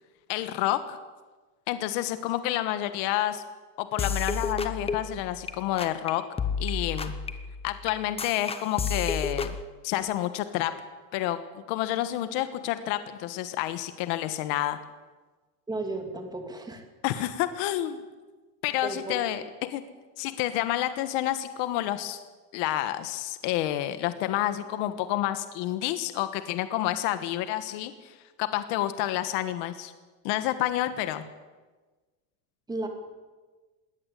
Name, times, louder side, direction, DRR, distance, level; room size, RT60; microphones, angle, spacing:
voice 1, 0.3-1.0 1.7-3.4 3.8-6.2 6.6-7.1 7.6-9.5 9.8-10.7 11.1-14.8 17.0-18.0 18.6-19.8 20.2-22.2 22.5-29.9 30.2-31.2, left 13 dB, 60° left, 11 dB, 1.5 m, -29 dB
sound 1, 4.0-5.5 5.8-6.1 6.4-9.6, left 5 dB, 15° left, 0.8 m, -31 dB
voice 2, 15.7-16.8 18.8-19.2 32.7-32.9, right 2 dB, 10° right, 4 dB, 2.5 m, -34 dB
20.5 x 18.0 x 8.3 m, 1.3 s
cardioid pair, 175°, 46 cm